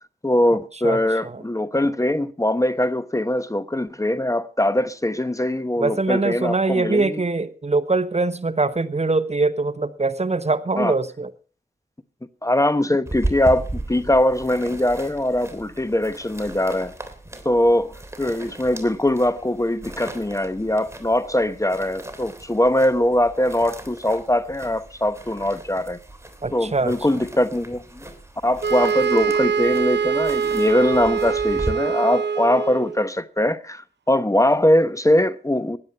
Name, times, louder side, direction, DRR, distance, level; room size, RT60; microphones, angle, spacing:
voice 1, 0.2-7.2 10.8-10.9 12.4-16.9 17.4-17.9 18.2-26.0 26.5-27.8 28.4-35.8, left 1 dB, 15° left, 1.0 m, -21 dB
voice 2, 0.8-1.4 5.8-11.3 26.4-26.9, right 3 dB, 35° right, 1.1 m, -23 dB
sound 1, 13.1-31.7, right 1 dB, 15° right, 3.2 m, -37 dB
sound 2, 28.6-33.0, right 6 dB, 70° right, 0.9 m, -23 dB
16.0 x 11.0 x 5.7 m
cardioid pair, 40°, 19 cm